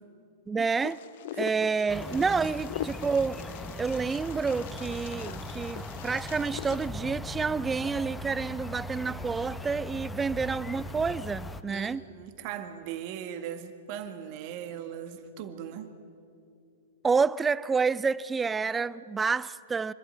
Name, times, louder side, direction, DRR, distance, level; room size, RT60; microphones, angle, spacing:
voice 1, 0.5-1.0 1.4-3.4 3.8-12.0 17.0-19.9, right 5 dB, 15° right, 0.5 m, -29 dB
Wind, 0.8-6.9, left 11 dB, 60° left, 0.7 m, -41 dB
sound 1, 1.9-11.6, left 1 dB, 10° left, 1.0 m, -39 dB
voice 2, 11.7-15.9, right 9 dB, 45° right, 1.9 m, -39 dB
26.0 x 12.5 x 9.9 m
hypercardioid pair, 105°, 0 cm